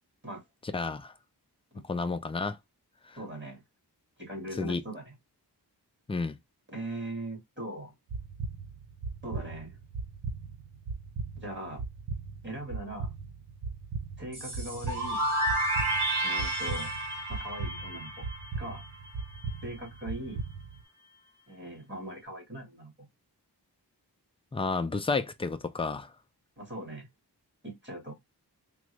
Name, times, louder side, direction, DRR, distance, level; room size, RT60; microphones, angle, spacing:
voice 1, 0.7-1.1 1.9-2.6 3.1-3.2 4.6-4.8 6.1-6.4 24.5-26.1, left 4 dB, 15° left, 0.3 m, -31 dB
voice 2, 3.2-3.6 4.2-5.1 6.7-7.9 9.2-9.8 11.4-11.8 12.4-13.1 14.2-15.3 16.2-16.9 17.3-18.2 18.6-18.8 19.6-20.4 21.5-23.1 26.6-27.1 27.6-28.2, right 1 dB, 30° right, 1.8 m, -40 dB
sound 1, 8.1-20.8, right 4 dB, 90° right, 0.6 m, -39 dB
sound 2, 14.3-19.1, right 1 dB, 50° right, 1.8 m, -31 dB
3.5 x 2.0 x 3.2 m
wide cardioid pair, 85°, 39 cm